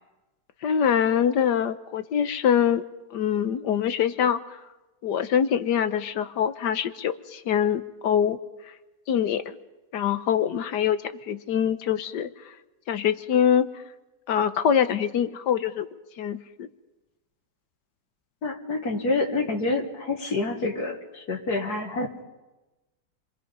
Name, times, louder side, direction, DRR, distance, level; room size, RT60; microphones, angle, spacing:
voice 1, 0.6-2.8 3.1-4.4 5.0-8.4 9.1-9.6 9.9-12.3 12.9-13.7 14.3-15.9 16.2-16.7, left 8 dB, 80° left, 11 dB, 1.6 m, -24 dB
voice 2, 18.4-22.2, left 3 dB, 65° left, 3 dB, 2.4 m, -28 dB
29.5 x 22.5 x 5.4 m, 1.1 s
omnidirectional pair, 1.8 m